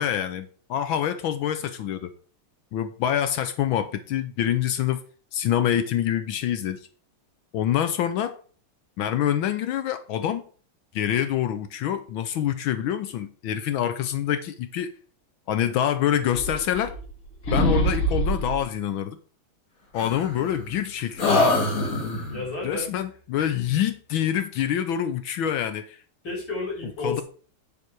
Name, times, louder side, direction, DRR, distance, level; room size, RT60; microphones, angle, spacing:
voice 1, 0.0-2.1 2.7-5.0 5.3-6.9 7.5-8.4 9.0-10.4 10.9-14.9 15.5-16.9 17.5-19.2 19.9-21.6 22.6-26.0 27.0-27.2, left 10 dB, 75° left, 1.4 m, -26 dB
sound 1, 16.3-17.2 17.5-18.6 20.0-20.8 21.2-22.4, left 1 dB, 40° left, 2.3 m, -24 dB
voice 2, 22.3-22.9 23.4-23.6 26.2-27.2, left 3 dB, 60° left, 6.1 m, -32 dB
8.1 x 6.9 x 4.7 m
omnidirectional pair, 2.3 m